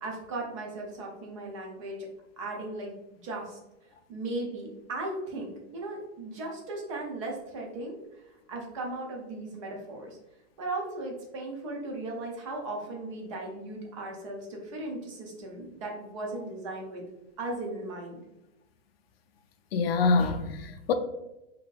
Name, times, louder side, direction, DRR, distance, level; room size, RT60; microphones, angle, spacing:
voice 1, 0.0-2.1 2.4-3.0 3.2-3.6 4.1-10.2 10.6-17.0 17.4-18.2, right 2 dB, 25° right, 0.5 m, -37 dB
voice 2, 19.7-20.9, left 4 dB, 55° left, 0.5 m, -25 dB
3.5 x 2.7 x 2.4 m
hypercardioid pair, 165°, 36 cm